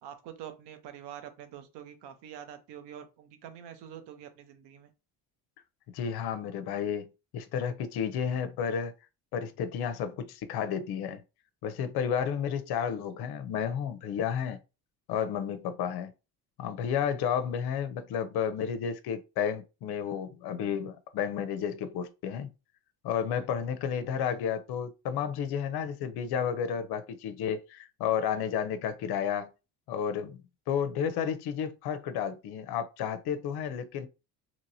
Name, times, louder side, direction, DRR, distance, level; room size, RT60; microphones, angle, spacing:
voice 1, 0.0-4.9, right 9 dB, 75° right, 0.8 m, -46 dB
voice 2, 5.9-8.9 9.3-11.2 11.6-14.6 15.1-16.1 16.6-22.5 23.0-29.5 29.9-30.4 30.7-34.1, left 8 dB, 65° left, 0.6 m, -32 dB
2.9 x 2.8 x 2.6 m
cardioid pair, 100°, 42 cm